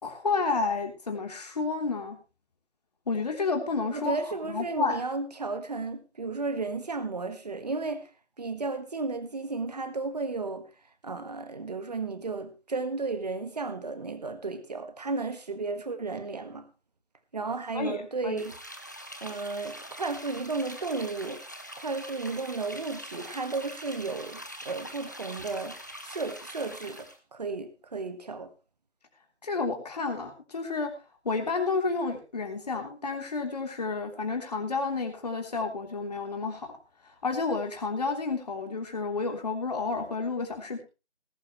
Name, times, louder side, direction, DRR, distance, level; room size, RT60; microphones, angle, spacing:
voice 1, 0.0-2.2 3.1-4.2 4.4-5.0 17.7-18.4 29.4-30.9 31.3-36.7 37.2-40.8, left 4 dB, 35° left, 3.4 m, -30 dB
voice 2, 3.9-8.1 8.4-10.6 11.0-16.7 17.3-18.5 19.2-21.4 21.8-24.4 24.6-25.8 26.0-28.5, right 3 dB, 35° right, 1.6 m, -33 dB
sound 1, 18.4-27.2, equal, 15° left, 0.8 m, -43 dB
19.5 x 10.5 x 3.1 m
figure-of-eight pair, 165°, 34 cm